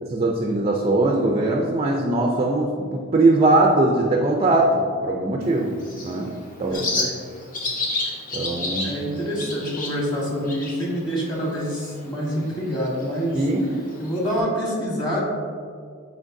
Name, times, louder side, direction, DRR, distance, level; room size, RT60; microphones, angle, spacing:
voice 1, 0.0-6.8 8.3-9.0 13.3-13.7, right 2 dB, 25° right, 1 dB, 0.4 m, -21 dB
Bird, 5.4-14.4, left 2 dB, 40° left, 0.9 m, -32 dB
voice 2, 6.7-7.1 8.0-8.1 8.8-13.4 14.0-15.2, equal, 20° left, -4 dB, 1.4 m, -26 dB
8.6 x 4.6 x 2.6 m, 2.2 s
head